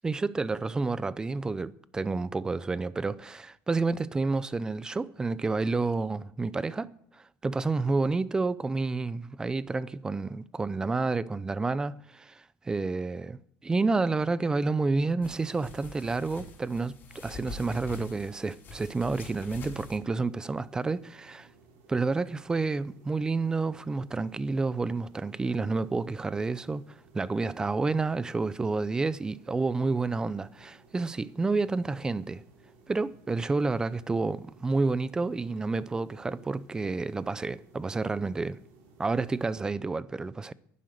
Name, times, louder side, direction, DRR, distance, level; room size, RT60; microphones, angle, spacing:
voice 1, 0.0-6.9 7.4-21.5 21.9-26.8 27.1-32.4 32.9-38.6 39.0-40.5, right 3 dB, 15° right, 0.6 m, -29 dB
sound 1, 15.2-20.0, left 3 dB, 40° left, 4.6 m, -45 dB
sound 2, 19.7-39.5, right 3 dB, 80° right, 4.4 m, -58 dB
11.5 x 9.9 x 9.3 m
cardioid pair, 135°, 5 cm